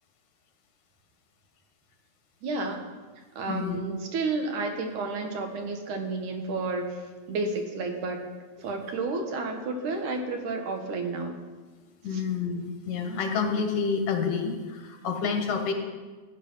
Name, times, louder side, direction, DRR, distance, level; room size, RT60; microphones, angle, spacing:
voice 1, 2.4-2.9 3.4-7.0 7.3-8.3 8.6-11.4 12.1-12.2, right 3 dB, 80° right, 4 dB, 2.9 m, -31 dB
voice 2, 3.5-3.8 12.0-15.7, left 5 dB, 75° left, 4 dB, 2.9 m, -28 dB
15.0 x 8.9 x 5.6 m, 1.3 s
omnidirectional pair, 3.5 m